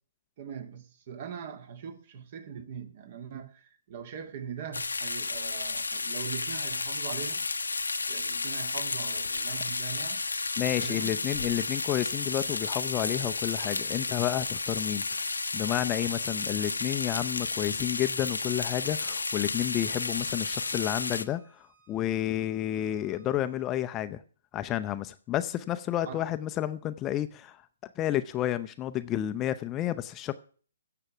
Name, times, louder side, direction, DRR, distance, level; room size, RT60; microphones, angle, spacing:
voice 1, 0.4-7.5 8.1-10.2 10.6-11.2 26.0-26.2, right 7 dB, 45° right, 1.6 m, -41 dB
sound 1, 4.7-21.2, left 3 dB, 80° left, 0.9 m, -32 dB
voice 2, 10.6-15.0 15.5-24.2 24.5-27.6 28.0-30.3, left 12 dB, 20° left, 0.6 m, -31 dB
Bowed string instrument, 19.2-23.7, right 4 dB, 85° right, 4.3 m, -64 dB
15.5 x 6.8 x 6.1 m
figure-of-eight pair, 135°, 0 cm